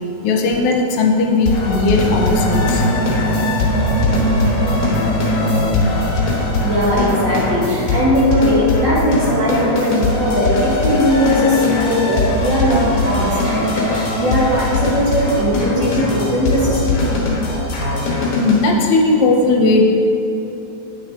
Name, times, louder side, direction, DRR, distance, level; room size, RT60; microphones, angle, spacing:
voice 1, 0.2-2.8 18.3-19.8, left 3 dB, 80° left, 1 dB, 2.1 m, -16 dB
sound 1, 1.5-18.6, left 3 dB, 55° left, 1.9 m, -21 dB
sound 2, 1.6-8.3, right 1 dB, 60° right, 1.1 m, -22 dB
voice 2, 6.6-17.1, equal, 40° right, -8 dB, 2.0 m, -18 dB
9.6 x 6.3 x 3.5 m, 2.9 s
omnidirectional pair, 3.4 m